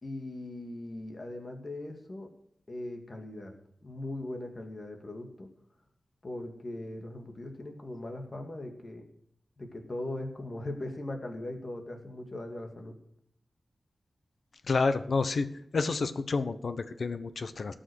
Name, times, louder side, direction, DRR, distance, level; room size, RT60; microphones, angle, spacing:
voice 1, 0.0-2.3 2.7-3.5 3.8-5.5 6.2-9.0 9.6-12.9, left 1 dB, 40° left, 3 dB, 2.1 m, -39 dB
voice 2, 14.7-15.5 15.7-17.7, left 4 dB, 65° left, 11 dB, 1.0 m, -29 dB
17.5 x 6.4 x 6.3 m, 0.73 s
wide cardioid pair, 120°, 0 cm